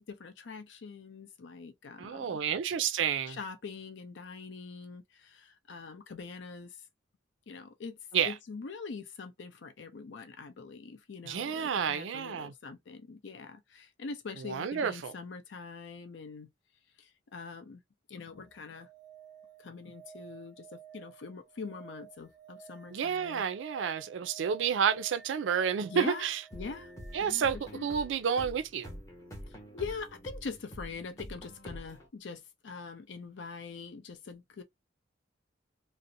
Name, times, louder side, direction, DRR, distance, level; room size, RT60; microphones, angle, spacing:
voice 1, 0.0-2.4 3.3-6.7 7.5-8.0 8.2-16.5 17.0-17.8 18.1-18.9 19.6-23.4 25.9-26.9 27.2-27.4 27.7-27.9 29.7-34.6, left 4 dB, 70° left, 0.5 m, -43 dB
voice 2, 2.0-3.4 8.1-8.3 11.2-12.5 14.4-15.1 22.9-26.4 27.1-28.9, right 7 dB, 75° right, 0.4 m, -30 dB
sound 1, 18.3-28.1 30.4-30.5, right 7 dB, 15° right, 0.6 m, -54 dB
sound 2, 26.5-32.1, equal, 15° left, 0.8 m, -46 dB
2.5 x 2.0 x 2.6 m
head